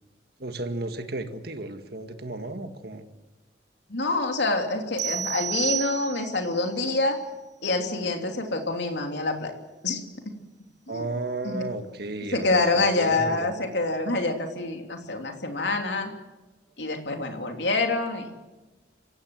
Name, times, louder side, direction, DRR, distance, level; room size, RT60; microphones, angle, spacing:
voice 1, 0.4-3.1 10.9-13.5, right 2 dB, 60° right, 7 dB, 1.9 m, -34 dB
voice 2, 3.9-7.2 7.6-9.5 9.8-10.3 10.9-11.1 11.4-11.7 12.3-16.1 16.8-18.3, left 2 dB, 75° left, 4 dB, 3.0 m, -26 dB
sound 1, 5.0-6.5, right 9 dB, 90° right, 2.4 m, -30 dB
26.5 x 16.0 x 7.7 m, 1.1 s
head